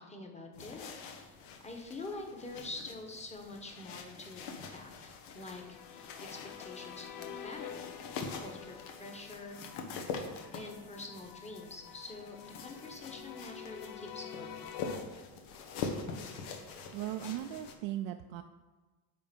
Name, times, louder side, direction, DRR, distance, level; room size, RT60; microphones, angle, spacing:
voice 1, 0.0-1.4 1.6-7.9 8.3-9.6 10.5-14.7, left 2 dB, 15° left, 2 dB, 1.1 m, -46 dB
sound 1, 0.5-17.7, left 5 dB, 80° left, 1.2 m, -44 dB
sound 2, 5.5-15.0, left 9 dB, 40° left, 0.6 m, -48 dB
voice 2, 16.9-18.4, right 13 dB, 65° right, 6 dB, 0.5 m, -38 dB
9.5 x 3.8 x 5.2 m, 1.3 s
cardioid pair, 125°, 50 cm